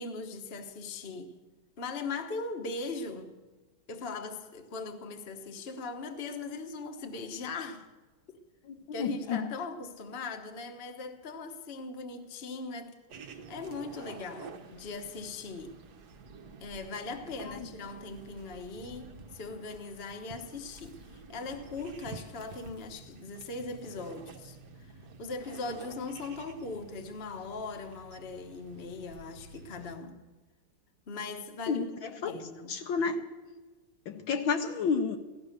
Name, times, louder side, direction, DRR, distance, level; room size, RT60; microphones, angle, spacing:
voice 1, 0.0-1.3 1.8-3.3 3.9-7.9 8.3-8.4 8.9-13.0 13.2-15.7 16.6-24.9 25.2-30.2 31.1-31.9 32.2-32.8, left 3 dB, 35° left, 1.1 m, -40 dB
voice 2, 8.6-9.5 17.5-17.6 31.7-32.4 32.7-33.2 34.1-35.2, left 5 dB, 70° left, 1.5 m, -31 dB
sound 1, 13.1-30.0, right 4 dB, 55° right, 1.4 m, -50 dB
16.5 x 13.0 x 6.6 m
omnidirectional pair, 2.4 m